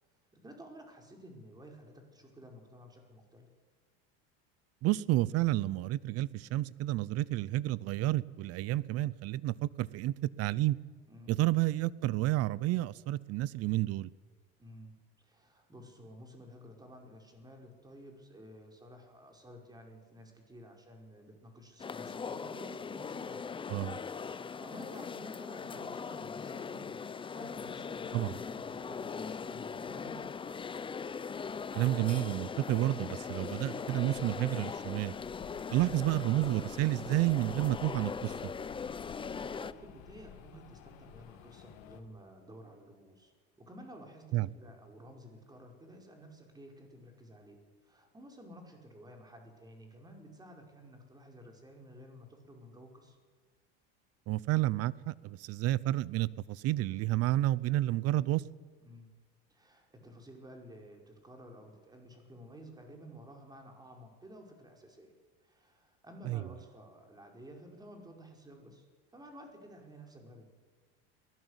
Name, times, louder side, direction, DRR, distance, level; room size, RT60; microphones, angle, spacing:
voice 1, 0.3-3.5 11.1-11.4 14.6-23.7 24.3-30.3 39.3-43.3 43.6-47.6 47.8-53.2 58.8-59.1 59.5-65.1 65.4-68.8 69.1-70.5, equal, 15° right, 2 dB, 5.1 m, -53 dB
voice 2, 4.8-10.8 11.3-14.1 23.7-24.0 28.1-28.3 31.7-35.1 35.7-38.5 44.3-44.5 54.3-58.4 66.3-66.4, right 16 dB, 55° right, 21 dB, 0.8 m, -30 dB
sound 1, 21.8-39.7, left 6 dB, 15° left, 0.7 m, -40 dB
sound 2, 27.5-42.0, left 10 dB, 60° left, 2.5 m, -55 dB
22.5 x 18.5 x 8.2 m, 1.4 s
supercardioid pair, 115°, 30 cm